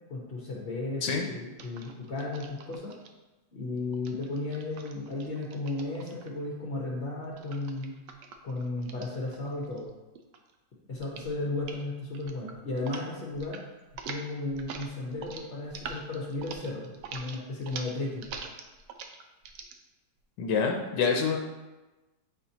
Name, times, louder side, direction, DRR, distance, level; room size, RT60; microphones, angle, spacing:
voice 1, 0.1-2.9 3.5-8.0 8.4-9.9 10.9-13.6 14.1-18.3, left 2 dB, 45° left, -4 dB, 0.9 m, -34 dB
sound 1, 1.6-3.1 3.9-6.5 7.4-9.9 10.2-10.5 10.9-11.3 11.6-11.8 12.1-13.0 13.3-13.6 13.9-19.7, right 5 dB, 85° right, 1.3 m, -44 dB
voice 2, 20.4-21.4, left 5 dB, 85° left, 2 dB, 1.3 m, -26 dB
7.8 x 4.3 x 2.8 m, 1.1 s
omnidirectional pair, 1.9 m